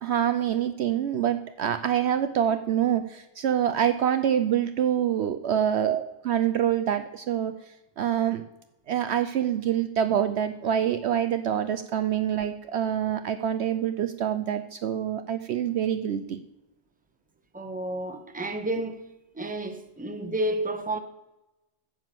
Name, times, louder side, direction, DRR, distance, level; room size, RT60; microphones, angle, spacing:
voice 1, 0.0-6.0 6.3-7.5 8.0-8.4 8.9-16.4, right 9 dB, 65° right, 0.8 m, -26 dB
voice 2, 17.5-19.0 19.3-21.0, right 2 dB, 5° right, 0.9 m, -30 dB
9.9 x 7.2 x 7.6 m
omnidirectional pair, 1.3 m